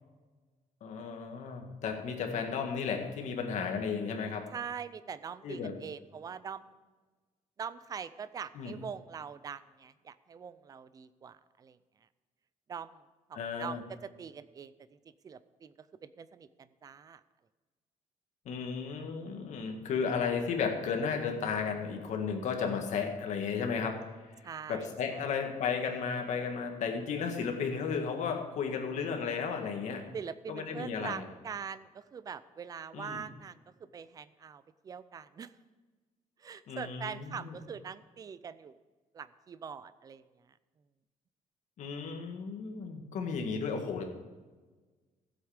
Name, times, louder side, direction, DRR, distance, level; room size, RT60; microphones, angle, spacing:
voice 1, 0.8-4.5 5.4-5.7 8.6-8.7 13.3-13.8 18.5-24.0 24.7-30.0 30.5-31.2 32.9-33.2 36.7-37.6 41.8-44.0, left 6 dB, 60° left, 3 dB, 1.8 m, -34 dB
voice 2, 4.5-6.7 7.6-11.8 12.7-13.0 13.3-17.2 24.4-25.3 30.1-33.6 33.9-35.5 36.4-38.8 39.1-40.2, right 7 dB, 25° right, 15 dB, 0.4 m, -43 dB
15.0 x 8.0 x 5.0 m, 1.3 s
cardioid pair, 175°, 14 cm